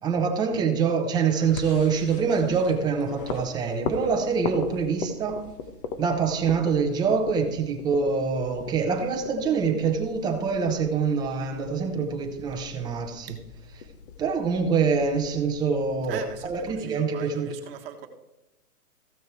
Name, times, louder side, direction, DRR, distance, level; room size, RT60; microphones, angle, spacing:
voice 1, 0.0-5.4 6.0-13.4 14.2-17.6, right 5 dB, 10° right, 3 dB, 0.8 m, -25 dB
sound 1, 1.3-16.8, left 5 dB, 35° left, 1.1 m, -40 dB
voice 2, 16.1-18.1, right 9 dB, 40° right, 5 dB, 1.6 m, -41 dB
15.0 x 6.3 x 4.6 m, 0.94 s
hypercardioid pair, 145°, 46 cm